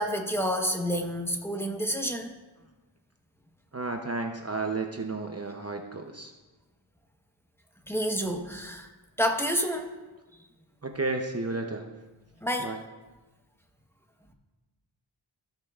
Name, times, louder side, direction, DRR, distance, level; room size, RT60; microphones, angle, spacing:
voice 1, 0.0-2.3 7.9-8.9 9.2-9.9 12.4-12.7, equal, 5° left, 3 dB, 1.1 m, -29 dB
voice 2, 3.7-6.3 10.8-11.8 12.6-12.8, right 3 dB, 30° right, 3 dB, 0.8 m, -32 dB
16.0 x 5.8 x 2.5 m, 1.2 s
cardioid pair, 50°, 48 cm